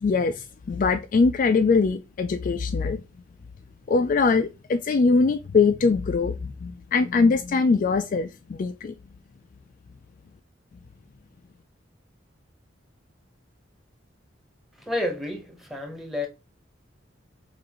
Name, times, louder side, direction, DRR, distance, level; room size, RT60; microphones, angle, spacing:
voice 1, 0.0-3.0 3.9-8.9, left 4 dB, 40° left, 0.3 m, -22 dB
voice 2, 14.7-16.3, left 1 dB, ahead, 0.9 m, -30 dB
5.9 x 2.5 x 2.9 m
head